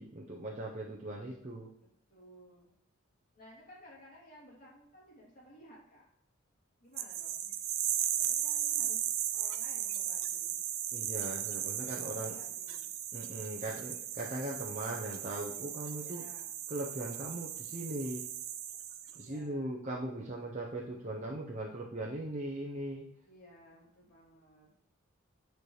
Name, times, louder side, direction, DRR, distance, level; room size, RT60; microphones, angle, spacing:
voice 1, 0.0-1.7 10.9-12.3 13.1-16.2 16.7-18.2 19.1-23.1, right 1 dB, 35° right, -3 dB, 0.8 m, -39 dB
voice 2, 1.8-2.7 3.3-6.0 6.8-7.5 8.1-10.6 11.7-12.9 16.0-16.5 19.2-19.8 23.2-24.7, equal, 45° left, -5 dB, 3.0 m, -57 dB
sound 1, 7.0-19.3, right 10 dB, 80° right, 0.6 m, -36 dB
9.4 x 4.6 x 3.2 m, 0.74 s
head